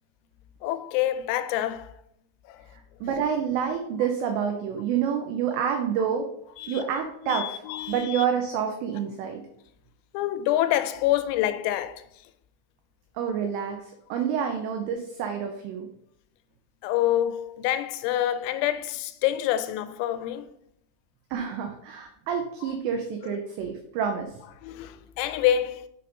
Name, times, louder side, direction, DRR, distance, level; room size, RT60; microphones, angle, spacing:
voice 1, 0.6-1.9 2.5-2.7 6.6-8.2 10.1-12.1 16.8-20.5 22.7-22.8 23.2-23.4 24.6-25.9, left 12 dB, 85° left, 3.3 m, -27 dB
voice 2, 3.0-6.3 6.7-7.6 7.9-9.4 13.2-15.9 21.3-24.3, right 7 dB, 90° right, 2.5 m, -28 dB
7.7 x 4.3 x 5.4 m
omnidirectional pair, 6.0 m